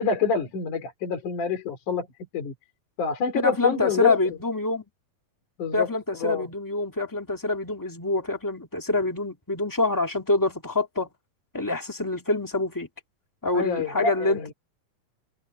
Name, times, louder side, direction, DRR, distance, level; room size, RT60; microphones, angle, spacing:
voice 1, 0.0-2.1 2.3-2.5 3.0-4.2 5.6-5.9 6.2-6.5 13.5-14.5, left 6 dB, 65° left, 4.9 m, -26 dB
voice 2, 3.4-4.8 5.7-11.1 11.5-12.9 13.4-14.5, left 2 dB, 10° left, 1.0 m, -26 dB
omnidirectional pair, 3.9 m